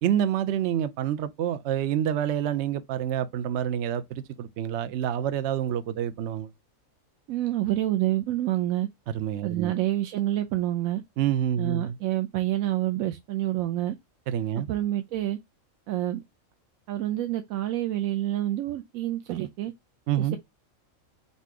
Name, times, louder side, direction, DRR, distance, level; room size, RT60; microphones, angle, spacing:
voice 1, 0.0-6.5 9.1-9.7 11.2-12.0 14.3-14.7 20.1-20.4, right 10 dB, 65° right, 0.8 m, -27 dB
voice 2, 7.3-8.9 9.4-11.0 11.6-14.0 14.6-15.4 15.9-16.2 16.9-19.7 20.2-20.4, right 14 dB, 85° right, 1.0 m, -28 dB
4.1 x 2.7 x 4.6 m
omnidirectional pair, 1.4 m